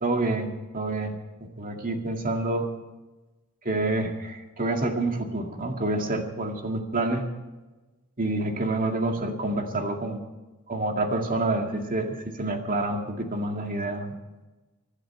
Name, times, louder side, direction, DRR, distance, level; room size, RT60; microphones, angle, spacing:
voice 1, 0.0-2.7 3.6-7.3 8.2-10.2 10.7-14.1, right 2 dB, 40° right, 3 dB, 2.1 m, -28 dB
25.0 x 11.5 x 4.5 m, 1.1 s
head